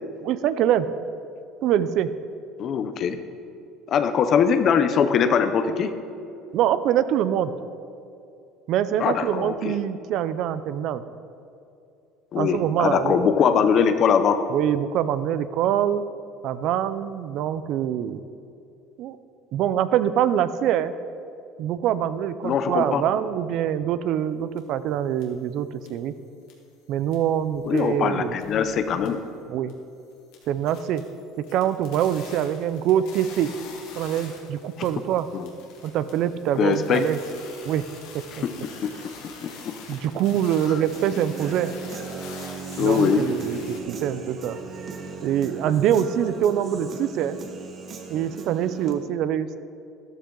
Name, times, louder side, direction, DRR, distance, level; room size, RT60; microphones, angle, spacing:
voice 1, 0.2-0.9 1.6-2.1 6.5-7.5 8.7-11.0 12.4-13.2 14.5-16.0 16.4-18.2 19.0-19.2 19.5-20.9 21.6-26.1 26.9-28.4 29.5-29.7 30.5-31.0 31.4-33.5 34.0-35.3 35.8-37.2 37.6-37.8 38.1-38.4 39.9-41.7 42.8-44.6 45.2-47.4 48.1-49.6, right 10 dB, 45° right, 13 dB, 0.5 m, -24 dB
voice 2, 2.6-3.2 3.9-5.9 9.0-9.8 12.3-14.4 22.4-23.0 27.6-29.2 34.8-34.9 35.3-35.5 36.6-37.1 38.3-38.6 38.8-38.9 39.4-39.5 42.8-43.2, left 7 dB, 30° left, 9 dB, 0.7 m, -22 dB
sound 1, 24.6-24.7 25.2-25.3 25.8-26.1 26.4-26.7 27.0-27.9 28.2-29.3 29.7-29.8 30.1-43.8, left 5 dB, 65° left, 2.4 m, -45 dB
Human voice / Guitar, 40.9-48.9, right 5 dB, 25° right, 1.0 m, -36 dB
13.0 x 13.0 x 3.9 m, 2.5 s
cardioid pair, 180°, 0 cm